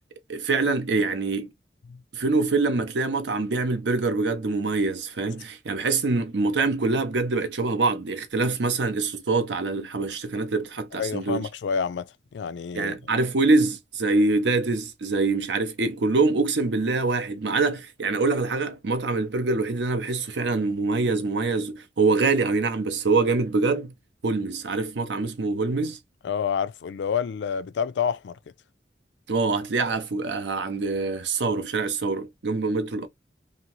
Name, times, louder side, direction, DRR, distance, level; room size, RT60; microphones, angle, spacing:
voice 1, 0.3-1.5 2.1-11.5 12.7-23.9 24.2-26.0 29.3-33.1, right 3 dB, 75° right, 0.6 m, -24 dB
voice 2, 11.0-13.0 26.2-28.4, left 7 dB, 75° left, 0.4 m, -28 dB
2.8 x 2.7 x 2.9 m
head